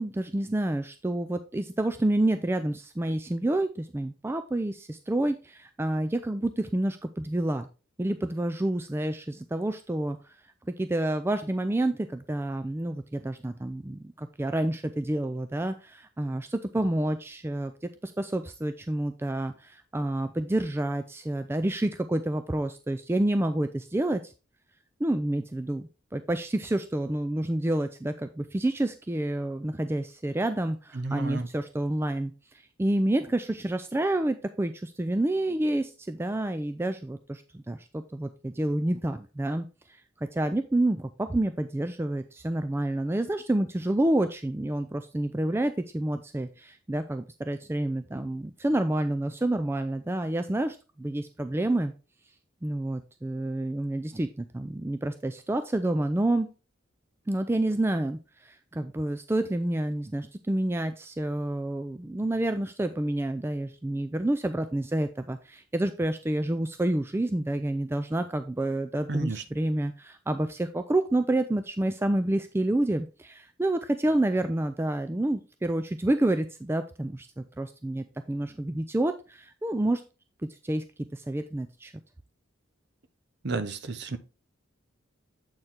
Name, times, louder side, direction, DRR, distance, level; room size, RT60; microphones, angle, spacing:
voice 1, 0.0-7.7 8.0-10.2 10.8-17.7 18.0-24.3 25.0-32.3 32.8-39.7 40.3-51.9 52.6-56.5 57.3-80.0 80.6-80.8 81.1-81.9, right 1 dB, 10° right, 9 dB, 0.3 m, -28 dB
voice 2, 30.9-31.5 69.1-69.4 83.4-84.2, right 3 dB, 55° right, 11 dB, 0.7 m, -31 dB
7.8 x 4.5 x 3.6 m, 0.32 s
head